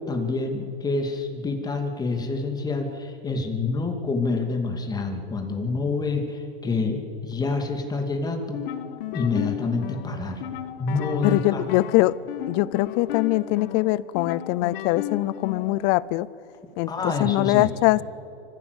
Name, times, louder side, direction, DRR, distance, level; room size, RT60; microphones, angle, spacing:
voice 1, 0.0-8.6 9.1-10.4 10.8-11.6 16.9-17.7, left 3 dB, 15° left, 3 dB, 2.6 m, -27 dB
sound 1, 8.4-15.9, left 11 dB, 60° left, 1.4 m, -35 dB
voice 2, 11.2-12.2 12.5-16.3 16.8-16.9 17.2-18.0, left 18 dB, 40° left, 21 dB, 0.6 m, -22 dB
24.5 x 15.5 x 8.2 m, 2.9 s
supercardioid pair, 140°, 30 cm